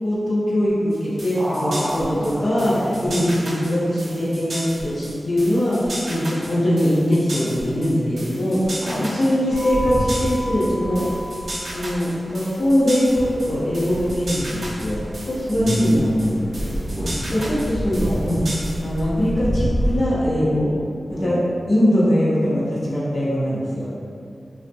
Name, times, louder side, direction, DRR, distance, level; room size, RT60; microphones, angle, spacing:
voice 1, 0.0-11.0 11.7-16.8 17.3-18.4 18.8-20.7 21.1-21.4 21.7-23.9, equal, 55° left, -8 dB, 0.6 m, -22 dB
sound 1, 0.9-19.0, right 1 dB, 75° right, 0.6 m, -34 dB
voice 2, 1.4-3.2 8.8-9.1 15.5-16.3 16.9-17.5 21.1-21.4, equal, 30° right, -9 dB, 0.4 m, -25 dB
sound 2, 9.5-20.0, equal, 35° left, 0.9 m, -29 dB
3.3 x 2.0 x 2.7 m, 2.3 s
wide cardioid pair, 120°, 0 cm